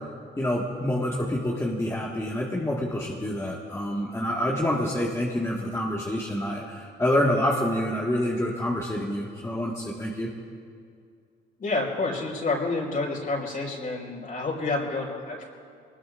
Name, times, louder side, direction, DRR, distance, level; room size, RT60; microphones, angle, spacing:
voice 1, 0.4-10.3, left 1 dB, 15° left, -3 dB, 1.8 m, -27 dB
voice 2, 11.6-15.4, left 3 dB, 45° left, -2 dB, 5.1 m, -29 dB
24.0 x 20.0 x 2.6 m, 2.3 s
cardioid pair, 90°, 20 cm